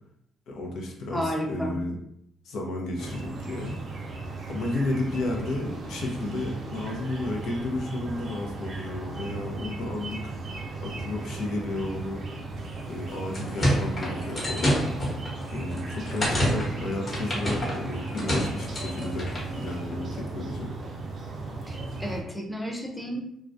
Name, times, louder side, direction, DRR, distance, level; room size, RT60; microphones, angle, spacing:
voice 1, 0.5-2.0 2.4-4.0 4.5-12.2 12.9-15.0 15.5-20.7, left 2 dB, 75° left, 0 dB, 0.5 m, -33 dB
voice 2, 1.1-1.8 21.7-23.2, equal, 10° left, 0 dB, 0.5 m, -32 dB
sound 1, 3.0-22.2, right 3 dB, 55° right, 0.5 m, -36 dB
sound 2, 13.1-19.5, equal, 35° left, 1.0 m, -29 dB
2.3 x 2.1 x 2.5 m, 0.74 s
cardioid pair, 90°, 0 cm